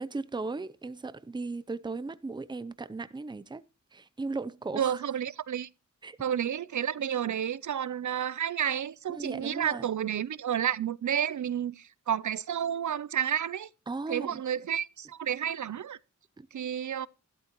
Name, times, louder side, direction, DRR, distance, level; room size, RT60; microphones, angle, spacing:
voice 1, 0.0-3.6 3.9-5.0 6.0-6.2 9.1-9.9 13.9-14.4 16.4-16.5, right 3 dB, 15° right, 0.5 m, -37 dB
voice 2, 4.7-5.7 6.2-13.7 14.1-16.0 16.5-17.1, right 9 dB, 65° right, 0.5 m, -31 dB
13.5 x 12.0 x 2.9 m
wide cardioid pair, 120°, 31 cm